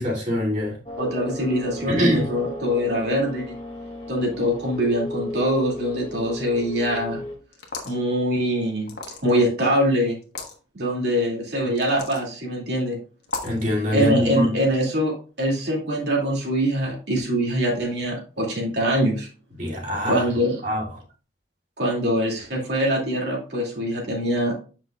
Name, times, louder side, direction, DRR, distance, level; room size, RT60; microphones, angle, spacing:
voice 1, 0.0-0.8 1.9-2.4 13.4-14.6 19.5-20.2 20.6-20.8, left 1 dB, 45° right, 2.5 m, -23 dB
sound 1, 0.9-7.4, left 1 dB, 30° left, 1.4 m, -35 dB
voice 2, 1.0-3.5 4.1-7.2 7.8-8.9 9.2-10.2 10.7-13.0 13.9-19.3 20.1-20.6 21.8-24.5, equal, 65° right, 2.3 m, -23 dB
sound 2, 7.5-8.0 8.9-9.5 10.2-10.5 11.8-12.2 13.2-13.6, left 3 dB, 65° left, 1.4 m, -34 dB
7.9 x 5.8 x 2.3 m
head